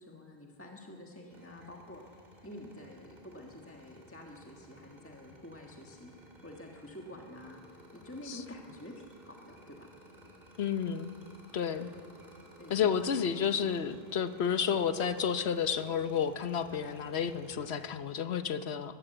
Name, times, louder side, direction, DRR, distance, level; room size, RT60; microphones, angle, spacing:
voice 1, 0.0-2.0 2.4-9.9 11.7-12.0 12.6-13.3, left 1 dB, 15° left, 0 dB, 1.5 m, -48 dB
sound 1, 1.3-17.8, equal, 45° right, 3.7 m, -56 dB
voice 2, 10.6-11.1 11.5-11.9 12.7-19.0, left 7 dB, 85° left, 11 dB, 1.2 m, -31 dB
21.5 x 16.0 x 7.9 m, 2.2 s
omnidirectional pair, 1.1 m